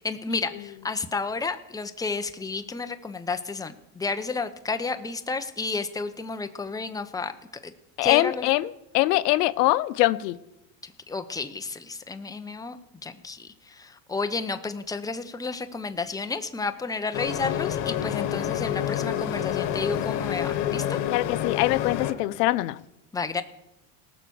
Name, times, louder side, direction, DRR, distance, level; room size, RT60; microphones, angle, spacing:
voice 1, 0.0-7.3 7.6-7.7 8.0-8.5 10.8-12.8 13.0-21.0 23.1-23.4, left 4 dB, 10° left, 0.8 m, -31 dB
voice 2, 8.0-8.7 8.9-10.4 21.1-22.8, left 17 dB, 85° left, 0.7 m, -23 dB
sound 1, 17.1-22.1, left 11 dB, 60° left, 1.7 m, -28 dB
18.5 x 6.2 x 7.0 m
supercardioid pair, 105°, 47 cm